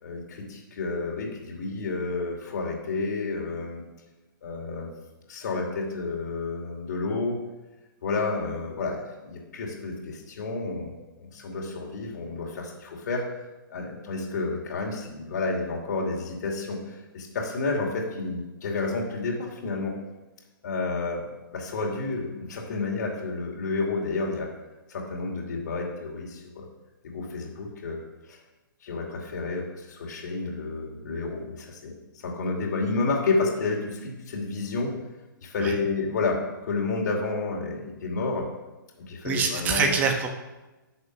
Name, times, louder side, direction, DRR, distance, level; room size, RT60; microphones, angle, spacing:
voice 1, 0.0-3.8 4.4-4.9 5.3-7.4 8.0-10.9 11.2-13.2 13.7-19.9 20.6-24.5 24.9-26.7 27.0-28.0 28.3-28.4 28.8-34.9 35.4-38.5 39.0-40.0, left 3 dB, 55° left, -1 dB, 2.8 m, -30 dB
voice 2, 39.2-40.3, right 5 dB, 15° right, 4 dB, 1.1 m, -25 dB
11.5 x 6.5 x 6.1 m, 1.1 s
hypercardioid pair, 160°, 11 cm